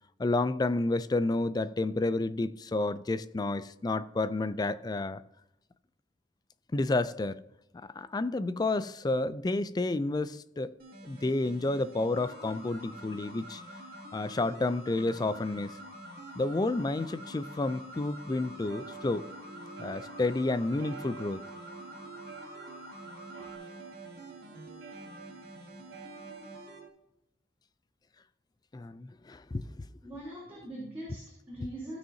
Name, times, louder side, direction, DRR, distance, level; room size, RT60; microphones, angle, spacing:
voice 1, 0.2-5.2 6.7-7.4 7.7-10.7 11.0-13.6 14.1-15.8 16.4-19.3 19.8-21.4 28.7-29.7, left 2 dB, 25° left, 0.4 m, -30 dB
sound 1, 10.8-26.8, right 1 dB, 55° right, 2.3 m, -50 dB
sound 2, 12.1-23.6, left 1 dB, 40° left, 2.4 m, -49 dB
sound 3, 18.7-26.9, right 6 dB, 80° right, 1.2 m, -48 dB
voice 2, 30.0-32.0, right 1 dB, 15° right, 3.1 m, -42 dB
15.0 x 6.3 x 2.7 m
head